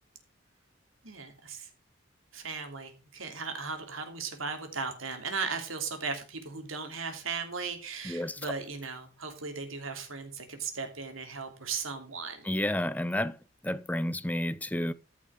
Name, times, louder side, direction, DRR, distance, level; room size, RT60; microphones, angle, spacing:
voice 1, 1.0-1.7 2.3-12.5, right 5 dB, 85° right, 3.1 m, -37 dB
voice 2, 8.0-8.5 12.4-13.4 13.6-14.9, left 1 dB, 10° left, 0.5 m, -31 dB
14.0 x 6.3 x 5.0 m
head